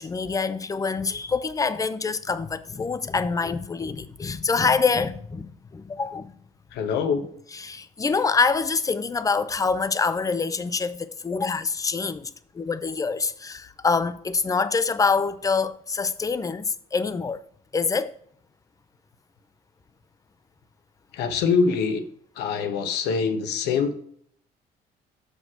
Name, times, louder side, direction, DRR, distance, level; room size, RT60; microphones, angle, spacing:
voice 1, 0.0-6.3 7.5-17.4 17.7-18.1, left 4 dB, 20° left, 0.5 m, -25 dB
voice 2, 6.7-7.2 21.1-22.0 22.4-23.9, left 5 dB, 85° left, 1.1 m, -24 dB
6.2 x 5.1 x 4.9 m
cardioid pair, 110°, 17 cm